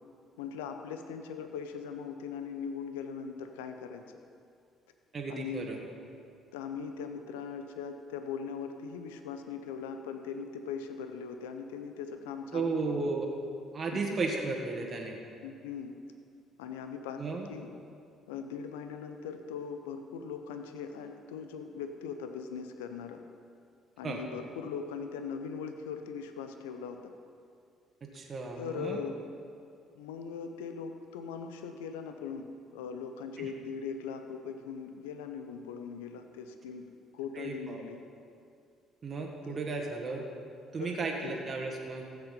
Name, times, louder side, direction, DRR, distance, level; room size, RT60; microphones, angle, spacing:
voice 1, 0.4-4.0 5.3-5.7 6.5-13.1 13.9-14.2 15.4-16.0 16.6-17.7 18.3-23.2 24.0-27.1 28.6-29.2 29.9-32.5 32.7-36.9 37.1-38.0 39.4-39.6 40.8-41.0 41.2-41.4, left 6 dB, 80° left, 7 dB, 0.7 m, -40 dB
voice 2, 5.1-5.8 12.5-13.3 13.7-15.2 17.2-17.4 24.0-24.2 28.1-29.0 33.4-33.5 37.3-37.8 39.0-40.3 40.7-42.0, right 3 dB, 40° right, 1 dB, 1.6 m, -34 dB
14.5 x 8.0 x 5.4 m, 2.4 s
hypercardioid pair, 50°, 0 cm